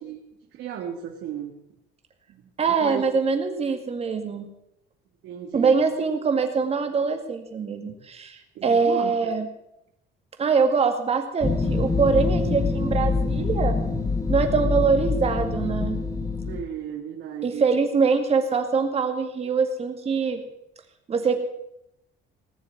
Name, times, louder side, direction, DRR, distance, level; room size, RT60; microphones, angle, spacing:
voice 1, 0.5-1.5 2.3-3.0 5.2-5.8 8.6-9.3 16.4-17.6, right 9 dB, 65° right, 2 dB, 1.9 m, -35 dB
voice 2, 2.6-4.5 5.5-9.5 10.4-13.8 14.3-16.0 17.4-20.4 21.1-21.4, right 5 dB, 30° right, 6 dB, 2.1 m, -23 dB
sound 1, 11.4-16.6, left 3 dB, 15° left, 1.2 m, -25 dB
19.0 x 6.9 x 8.9 m, 0.81 s
cardioid pair, 150°, 21 cm